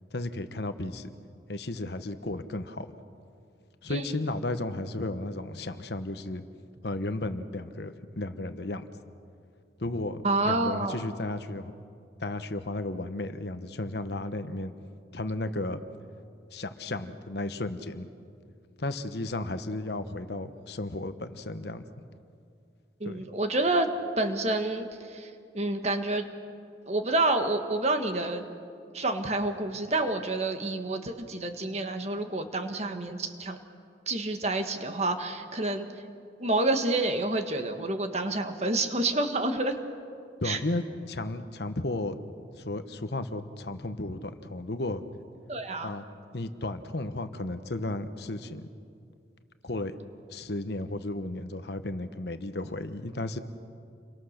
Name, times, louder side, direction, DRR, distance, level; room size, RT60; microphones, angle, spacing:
voice 1, 0.1-1.1 1.5-2.9 3.8-6.4 6.8-8.8 9.8-11.7 12.2-14.7 15.1-15.8 16.5-18.1 18.8-21.8 23.0-23.2 40.4-42.1 42.6-45.0 45.8-46.0 46.3-48.7 49.6-49.9 50.3-53.4, left 2 dB, 60° left, 10 dB, 1.1 m, -34 dB
voice 2, 10.2-11.0 23.0-23.9 24.2-26.3 26.9-28.5 28.9-33.6 34.1-35.9 36.4-39.8 40.4-40.6 45.5-45.9, right 2 dB, 35° right, 6 dB, 1.5 m, -28 dB
29.5 x 23.5 x 6.6 m, 2.4 s
head